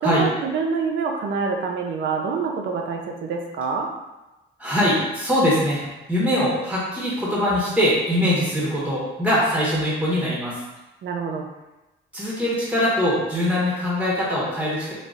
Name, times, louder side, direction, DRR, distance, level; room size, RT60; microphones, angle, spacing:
voice 1, 0.0-3.9 11.0-11.5, right 5 dB, 65° right, 2 dB, 0.6 m, -26 dB
voice 2, 4.6-10.6 12.1-14.9, equal, 5° right, -7 dB, 1.2 m, -22 dB
4.0 x 2.7 x 2.5 m, 1.0 s
cardioid pair, 90°, 20 cm